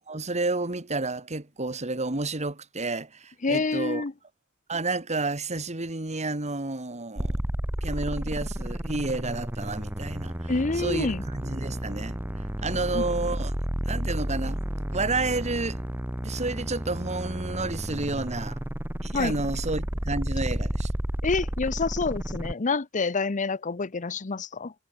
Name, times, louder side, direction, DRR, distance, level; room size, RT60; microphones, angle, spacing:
voice 1, 0.0-4.0 4.7-7.4 7.8-12.2 12.6-13.5 13.9-14.6 14.9-15.8 16.2-18.6 19.0-20.9, right 3 dB, 35° right, 2.3 m, -30 dB
voice 2, 3.4-4.1 10.5-11.2 12.9-13.0 19.1-19.3 21.2-24.7, left 4 dB, 35° left, 0.8 m, -27 dB
sound 1, 7.2-22.5, equal, 10° right, 0.9 m, -32 dB
head